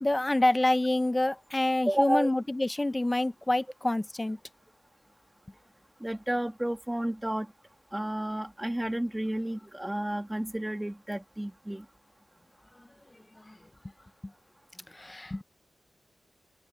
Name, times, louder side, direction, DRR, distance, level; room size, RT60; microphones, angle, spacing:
voice 1, 0.0-4.4 15.0-15.4, left 1 dB, 15° left, 0.7 m, -27 dB
voice 2, 1.9-2.3 6.0-7.5 7.9-11.8, right 1 dB, 10° right, 1.4 m, -31 dB
open air
wide cardioid pair, 125°, 0 cm